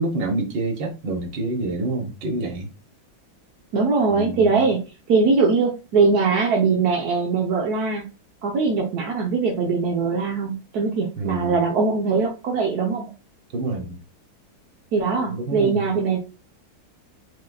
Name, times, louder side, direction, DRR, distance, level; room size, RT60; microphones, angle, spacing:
voice 1, 0.0-2.7 4.1-4.6 11.2-11.6 13.5-14.0 15.3-15.9, right 2 dB, 85° right, 1.9 m, -27 dB
voice 2, 3.7-8.1 8.4-13.1 14.9-16.2, right 4 dB, 65° right, 1.3 m, -21 dB
7.4 x 2.6 x 2.3 m
omnidirectional pair, 1.9 m